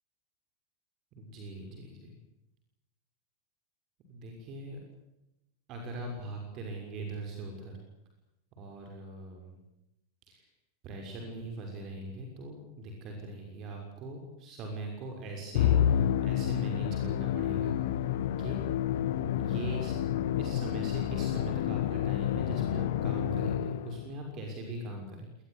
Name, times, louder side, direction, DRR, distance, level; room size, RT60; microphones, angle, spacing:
voice 1, 1.1-2.1 4.1-4.8 5.7-7.8 8.6-9.6 10.3-10.5 10.8-17.8 18.4-18.6 19.4-19.9 20.4-25.4, right 1 dB, 35° right, 3 dB, 6.2 m, -41 dB
Musical instrument, 15.5-24.1, left 10 dB, 55° left, 1.2 m, -29 dB
26.5 x 20.0 x 8.2 m, 0.89 s
figure-of-eight pair, 90°, 0 cm